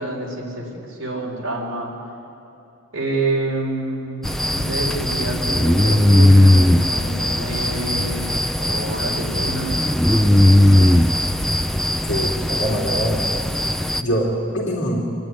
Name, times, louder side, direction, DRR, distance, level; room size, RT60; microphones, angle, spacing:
voice 1, 0.0-1.9 2.9-9.8 10.2-11.2, right 2 dB, 60° right, -2 dB, 4.4 m, -28 dB
sound 1, 4.2-14.0, left 1 dB, ahead, 0.4 m, -18 dB
voice 2, 12.1-13.3 14.0-15.1, equal, 55° left, -3 dB, 2.8 m, -23 dB
26.5 x 10.5 x 9.2 m, 2.8 s
head